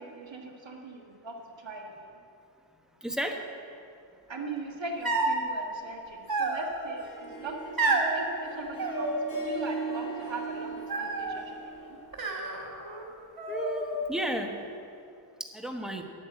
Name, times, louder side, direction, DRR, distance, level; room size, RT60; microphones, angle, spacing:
voice 1, 0.0-2.1 4.3-12.0, right 3 dB, 65° right, 1 dB, 1.7 m, -40 dB
voice 2, 3.0-3.4 13.5-14.7 15.4-16.0, equal, ahead, 3 dB, 1.1 m, -33 dB
sound 1, 5.0-5.5 6.3-7.0 7.8-8.2 8.8-9.6 9.9-10.4 10.9-11.4 12.1-13.0 13.4-14.1, right 2 dB, 45° right, 1.8 m, -30 dB
Harp, 6.8-12.1, right 4 dB, 40° left, 3.0 m, -39 dB
10.0 x 8.8 x 7.8 m, 2.5 s
wide cardioid pair, 95°, 48 cm